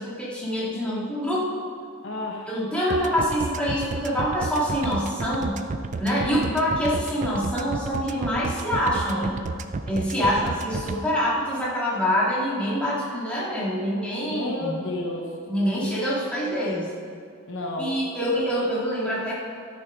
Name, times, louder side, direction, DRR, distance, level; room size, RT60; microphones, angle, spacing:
voice 1, 0.0-1.5 2.5-5.6 6.0-9.4 9.9-14.8 15.5-16.9 17.8-19.3, equal, 5° left, -7 dB, 2.2 m, -25 dB
voice 2, 2.0-2.5 6.1-6.8 10.2-10.4 14.3-15.3 17.5-17.9, left 1 dB, 60° left, 1 dB, 1.0 m, -32 dB
sound 1, 2.9-10.9, right 3 dB, 35° right, 0.4 m, -31 dB
13.0 x 6.7 x 5.1 m, 2.3 s
head